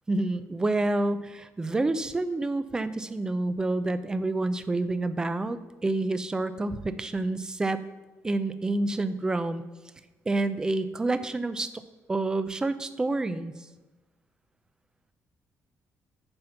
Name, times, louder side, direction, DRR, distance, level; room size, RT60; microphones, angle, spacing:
voice 1, 0.1-7.8 8.2-9.6 10.3-11.8 12.1-13.5, right 2 dB, 15° right, 12 dB, 0.4 m, -28 dB
8.8 x 5.8 x 5.8 m, 1.2 s
cardioid pair, 170°, 6 cm